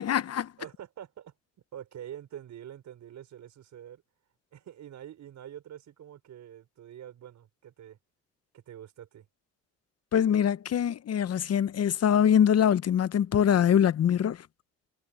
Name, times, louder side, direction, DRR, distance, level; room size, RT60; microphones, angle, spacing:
voice 1, 0.0-0.5 10.1-14.5, left 9 dB, 50° left, 1.1 m, -23 dB
voice 2, 0.6-1.3 1.7-4.0 4.5-8.0 8.5-9.3, right 10 dB, 65° right, 5.9 m, -46 dB
supercardioid pair, 65°, 31 cm